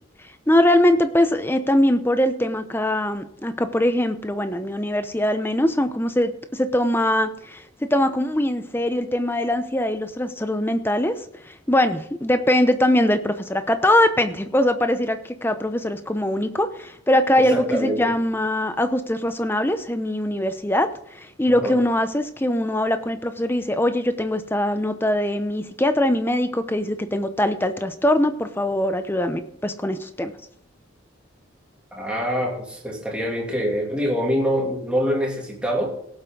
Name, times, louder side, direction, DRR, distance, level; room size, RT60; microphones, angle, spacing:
voice 1, 0.5-11.2 11.5-20.9 21.1-30.3, left 1 dB, 10° left, 9 dB, 0.7 m, -22 dB
voice 2, 17.4-18.2 21.5-21.8 31.9-35.9, equal, 5° right, -2 dB, 2.8 m, -25 dB
18.0 x 7.9 x 3.9 m, 0.68 s
head